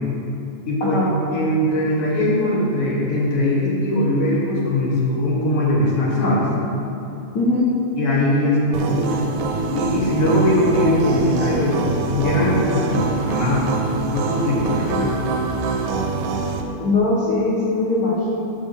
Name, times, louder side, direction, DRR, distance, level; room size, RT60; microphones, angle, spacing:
voice 1, 0.7-1.0 1.3-6.5 8.0-9.2 9.7-13.9 14.1-15.1, left 1 dB, 55° left, -5 dB, 2.2 m, -20 dB
voice 2, 7.3-7.7 16.8-18.3, left 2 dB, 80° left, -7 dB, 0.9 m, -20 dB
sound 1, 8.7-16.6, right 4 dB, 90° right, 2.2 m, -25 dB
7.7 x 4.6 x 6.9 m, 2.9 s
omnidirectional pair, 3.7 m